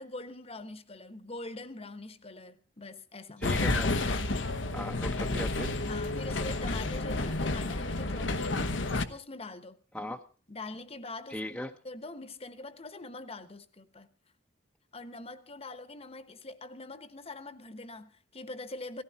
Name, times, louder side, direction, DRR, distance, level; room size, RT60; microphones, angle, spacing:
voice 1, 0.0-3.4 5.8-9.8 10.5-11.6 11.8-14.1 14.9-19.0, left 2 dB, 35° left, 1.1 m, -43 dB
sound 1, 3.4-9.0, left 2 dB, 90° left, 1.1 m, -30 dB
voice 2, 3.4-4.3 4.7-5.8 9.9-10.2 11.3-11.7, left 1 dB, 5° left, 0.8 m, -38 dB
17.5 x 15.5 x 4.0 m
head